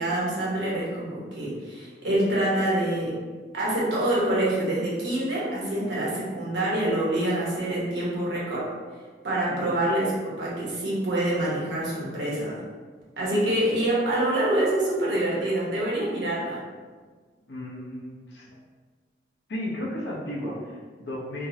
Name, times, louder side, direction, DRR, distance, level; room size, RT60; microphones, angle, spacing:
voice 1, 0.0-3.2 3.5-8.7 9.2-12.6 13.2-16.6, right 1 dB, 85° right, -6 dB, 1.0 m, -26 dB
voice 2, 9.5-9.9 17.5-18.5 19.5-21.5, left 1 dB, 85° left, -4 dB, 0.8 m, -34 dB
3.5 x 2.0 x 2.7 m, 1.5 s
head